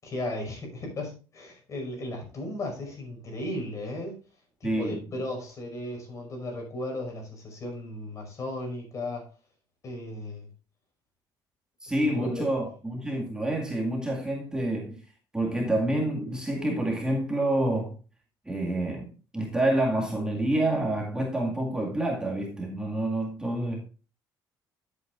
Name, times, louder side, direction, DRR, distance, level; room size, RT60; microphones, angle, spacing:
voice 1, 0.0-4.2 4.6-9.3 9.8-10.5 12.0-12.5, left 1 dB, 40° left, 5.5 m, -35 dB
voice 2, 4.6-5.0 11.8-15.0 15.3-18.0 18.5-23.8, right 1 dB, 10° right, 2.1 m, -28 dB
13.0 x 8.1 x 2.6 m
cardioid pair, 125°, 8 cm